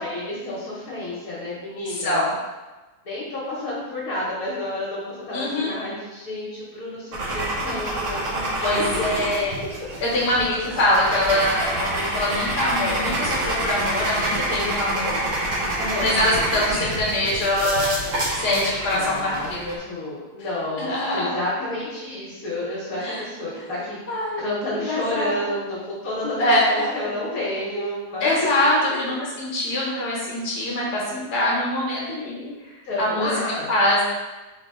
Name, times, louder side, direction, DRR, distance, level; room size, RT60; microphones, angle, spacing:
voice 1, 0.0-2.3 3.0-8.8 15.8-16.1 18.5-18.7 18.9-19.5 19.8-24.0 24.4-28.3 32.8-33.7, left 1 dB, 65° left, -6 dB, 1.4 m, -30 dB
voice 2, 1.9-2.3 5.3-5.7 8.6-9.6 10.0-15.2 16.0-18.0 18.4-19.8 20.8-21.4 23.0-23.2 24.1-24.5 24.7-25.5 26.4-27.2 28.2-32.5 33.0-33.4 33.7-34.0, left 1 dB, 45° left, -5 dB, 1.3 m, -23 dB
sound 1, 7.1-19.7, right 1 dB, 55° right, 1.2 m, -27 dB
4.0 x 3.2 x 3.7 m, 1.2 s
omnidirectional pair, 1.7 m